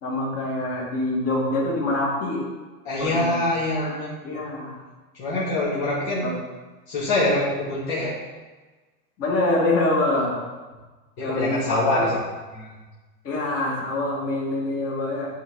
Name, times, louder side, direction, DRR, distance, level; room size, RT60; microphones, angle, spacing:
voice 1, 0.0-2.5 3.0-3.4 4.2-4.8 6.2-6.4 9.2-10.4 11.2-12.1 13.2-15.3, left 2 dB, 30° left, -4 dB, 2.6 m, -25 dB
voice 2, 2.8-4.1 4.3-4.4 5.1-6.3 6.9-8.2 11.2-12.2 12.5-12.8, left 2 dB, 50° left, -8 dB, 2.3 m, -24 dB
11.0 x 4.2 x 3.9 m, 1.3 s
hypercardioid pair, 130°, 45 cm